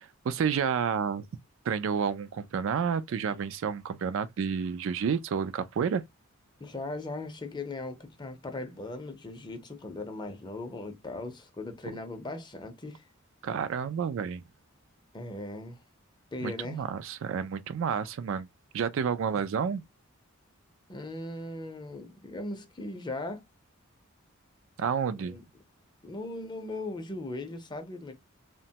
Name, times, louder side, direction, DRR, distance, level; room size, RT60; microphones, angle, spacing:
voice 1, 0.2-1.2 1.6-6.0 11.9-12.0 13.4-14.4 16.4-18.5 18.7-19.8 24.8-25.4, right 7 dB, 65° right, 0.3 m, -30 dB
voice 2, 6.6-13.0 15.1-15.8 16.3-16.8 20.9-23.4 25.2-25.4 26.0-28.1, left 2 dB, 20° left, 0.5 m, -38 dB
2.9 x 2.1 x 2.7 m
head